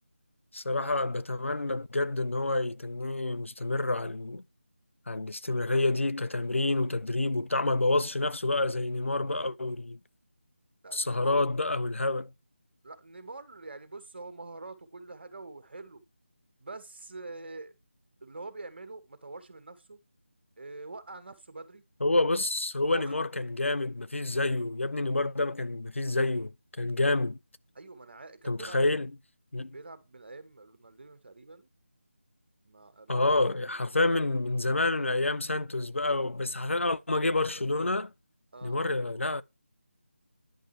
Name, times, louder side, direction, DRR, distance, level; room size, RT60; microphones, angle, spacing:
voice 1, 0.5-4.4 5.1-10.0 10.9-12.3 22.0-26.5 26.8-27.4 28.5-29.1 29.5-29.7 33.1-38.1 38.6-39.4, left 2 dB, 75° left, 0.7 m, -28 dB
voice 2, 10.8-11.4 12.8-16.0 16.6-17.7 18.2-20.0 20.6-21.8 22.9-23.1 27.8-28.8 29.7-31.7 32.6-34.3 38.5-38.8, right 3 dB, 50° right, 2.1 m, -45 dB
10.5 x 5.6 x 4.5 m
figure-of-eight pair, 165°, 7 cm